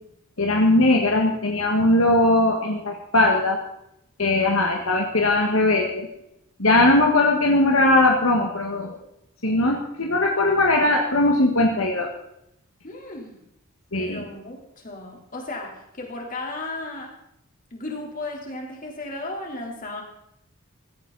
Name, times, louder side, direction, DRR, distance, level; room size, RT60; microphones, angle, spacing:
voice 1, 0.4-3.6 4.2-6.1 6.6-8.9 9.4-12.1 13.9-14.2, left 2 dB, 70° left, 1 dB, 1.8 m, -19 dB
voice 2, 12.8-13.4 14.0-17.1 17.7-20.0, left 2 dB, 40° left, 0 dB, 3.9 m, -35 dB
16.5 x 14.5 x 4.2 m, 0.80 s
head